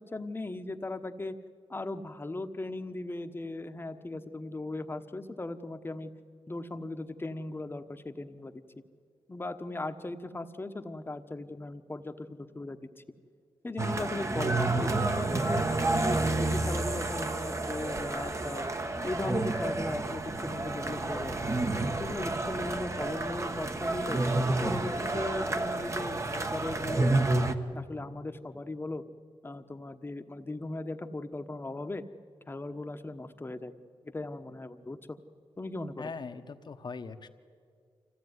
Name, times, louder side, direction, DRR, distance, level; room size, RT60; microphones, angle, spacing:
voice 1, 0.0-1.4 1.7-6.1 6.5-8.6 9.3-12.9 13.6-15.7 16.0-18.7 19.0-21.6 22.0-24.2 24.6-27.3 27.7-29.0 29.4-32.0 32.5-33.7 34.0-35.2 35.6-36.1, left 2 dB, 25° left, 8 dB, 1.2 m, -38 dB
sound 1, 13.8-27.5, right 2 dB, 30° right, 1.2 m, -30 dB
voice 2, 36.0-37.3, left 4 dB, 50° left, 8 dB, 1.3 m, -40 dB
25.0 x 16.0 x 9.7 m, 2.1 s
cardioid pair, 80°, 10 cm